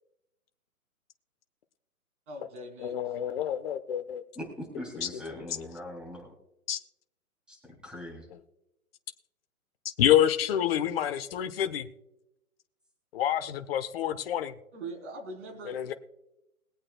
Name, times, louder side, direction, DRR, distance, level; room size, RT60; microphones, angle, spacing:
voice 1, 2.3-3.0 14.7-15.9, right 2 dB, 55° right, 4 dB, 3.7 m, -41 dB
voice 2, 2.8-4.2 5.0-5.7 6.7-6.8 8.3-8.4 10.0-11.9 13.1-14.5 15.6-15.9, left 11 dB, 40° left, 9 dB, 1.1 m, -28 dB
voice 3, 4.4-6.3 7.5-7.6 7.8-8.3, left 1 dB, ahead, 0 dB, 3.0 m, -41 dB
21.5 x 8.6 x 2.3 m, 0.91 s
hypercardioid pair, 145°, 43 cm